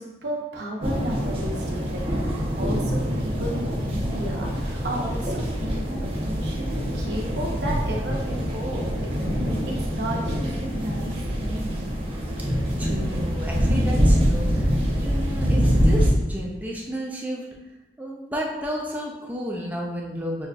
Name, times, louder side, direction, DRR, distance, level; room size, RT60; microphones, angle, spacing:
voice 1, 0.0-2.0 2.3-9.4 9.9-11.8, right 1 dB, 70° right, -2 dB, 0.8 m, -33 dB
sound 1, 0.8-16.1, equal, 30° right, 0.8 m, -25 dB
voice 2, 12.4-14.7 15.0-17.5 18.0-20.5, equal, 10° right, -2 dB, 0.4 m, -32 dB
6.2 x 2.4 x 2.3 m, 1.0 s
head